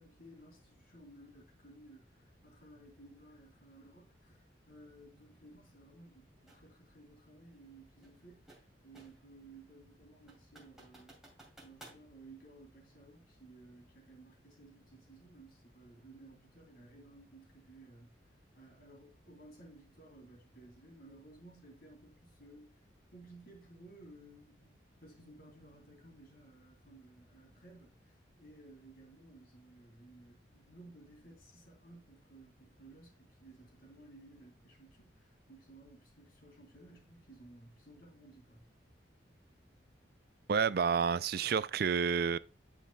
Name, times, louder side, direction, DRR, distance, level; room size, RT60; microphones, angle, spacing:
voice 1, 0.0-11.3 11.6-22.7 23.1-38.7, right 2 dB, 55° left, 2.8 m, -57 dB
sound 1, 6.5-6.7 8.0-9.3 9.7-9.8 10.3-12.0, right 2 dB, 5° right, 2.5 m, -57 dB
voice 2, 40.5-42.4, right 6 dB, 55° right, 0.3 m, -29 dB
10.5 x 5.8 x 2.2 m
head